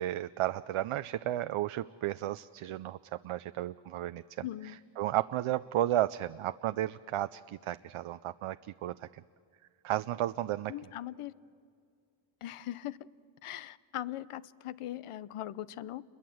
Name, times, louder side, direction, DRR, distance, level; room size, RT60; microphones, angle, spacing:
voice 1, 0.0-3.0 3.2-4.4 5.0-9.2 9.8-10.7, right 13 dB, 75° right, 13 dB, 0.6 m, -33 dB
voice 2, 4.4-4.8 10.7-11.3 12.4-13.0 13.4-16.0, left 13 dB, 90° left, 17 dB, 0.7 m, -40 dB
28.5 x 22.0 x 7.8 m, 2.3 s
cardioid pair, 80°, 50 cm